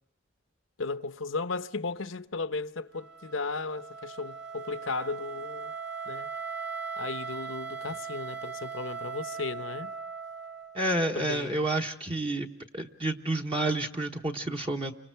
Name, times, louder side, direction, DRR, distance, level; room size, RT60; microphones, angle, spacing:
voice 1, 0.8-5.7 6.1-6.3 7.0-9.9 11.1-11.7, left 3 dB, 80° left, 0.9 m, -35 dB
Wind instrument woodwind instrument, 2.9-11.0, right 5 dB, 60° right, 0.9 m, -39 dB
voice 2, 10.7-12.5 12.7-14.9, right 1 dB, 25° right, 1.1 m, -29 dB
30.0 x 25.0 x 4.6 m
head